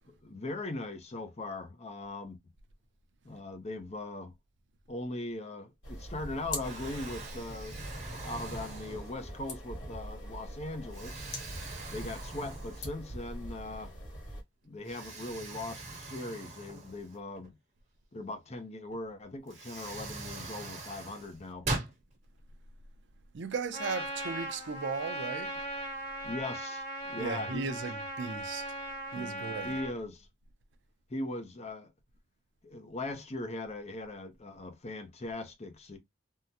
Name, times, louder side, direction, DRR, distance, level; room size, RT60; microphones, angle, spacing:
voice 1, 0.1-2.4 3.2-4.3 4.9-7.8 8.1-11.2 11.9-13.9 14.6-17.5 18.1-21.7 26.2-27.9 29.1-30.3 31.1-31.9 32.6-36.0, left 2 dB, 35° left, 0.6 m, -40 dB
sound 1, 5.8-14.4, left 1 dB, 85° left, 1.5 m, -43 dB
Explosion, 5.9-6.3 6.6-9.4 10.0-10.2 10.9-13.2 13.5-13.6 14.8-17.5 18.9-19.0 19.5-22.0, right 2 dB, 40° right, 1.3 m, -41 dB
voice 2, 23.3-25.5 27.2-28.7 29.1-29.8, right 4 dB, 70° right, 0.5 m, -36 dB
Trumpet, 23.7-29.9, right 1 dB, 60° left, 1.3 m, -39 dB
3.6 x 2.1 x 2.7 m
head